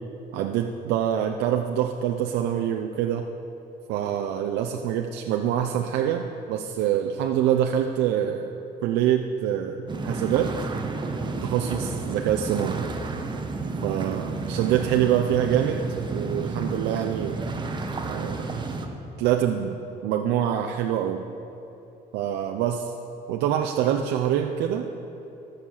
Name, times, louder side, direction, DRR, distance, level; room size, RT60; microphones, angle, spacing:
voice 1, 0.3-3.3 3.9-8.5 8.8-10.5 11.4-12.8 13.8-15.8 16.1-17.4 18.1-18.5 19.2-21.3 22.1-22.9 23.3-24.9, right 10 dB, 90° right, 3 dB, 0.6 m, -25 dB
sound 1, 9.9-18.9, right 3 dB, 25° right, 1.0 m, -31 dB
13.5 x 6.5 x 7.2 m, 3.0 s
cardioid pair, 110°, 17 cm